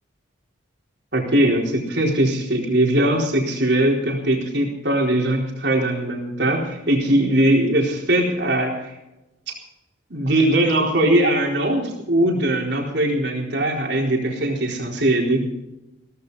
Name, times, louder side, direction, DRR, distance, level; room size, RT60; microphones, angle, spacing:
voice 1, 1.1-9.0 9.5-9.6 10.1-15.5, right 1 dB, 60° right, 0 dB, 4.1 m, -20 dB
16.5 x 15.0 x 4.1 m, 0.98 s
head